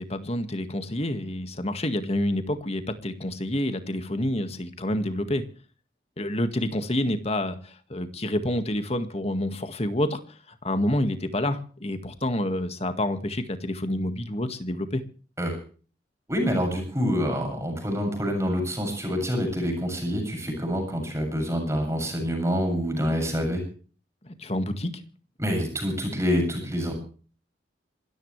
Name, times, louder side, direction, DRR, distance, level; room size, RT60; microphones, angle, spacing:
voice 1, 0.0-5.4 6.2-7.6 7.9-10.2 10.6-15.0 24.2-24.9, left 1 dB, 35° left, 1.9 m, -28 dB
voice 2, 16.3-23.6 25.4-26.9, equal, 15° right, 7.4 m, -26 dB
27.0 x 14.0 x 3.3 m
head